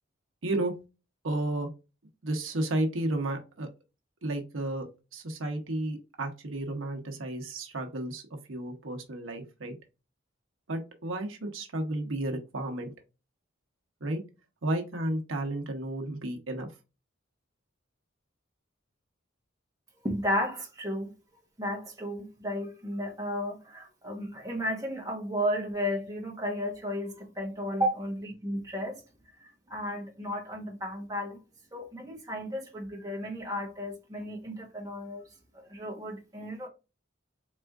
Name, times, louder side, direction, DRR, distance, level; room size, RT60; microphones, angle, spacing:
voice 1, 0.4-0.7 1.2-1.7 2.2-3.7 4.2-4.9 5.1-8.2 8.5-9.7 10.7-12.9 14.0-14.2 14.6-16.7, right 1 dB, 80° right, 0.9 m, -32 dB
voice 2, 20.0-21.1 21.6-29.0 29.4-31.4 31.7-35.2 35.5-36.7, equal, 20° right, 1.1 m, -33 dB
4.2 x 3.5 x 2.4 m
head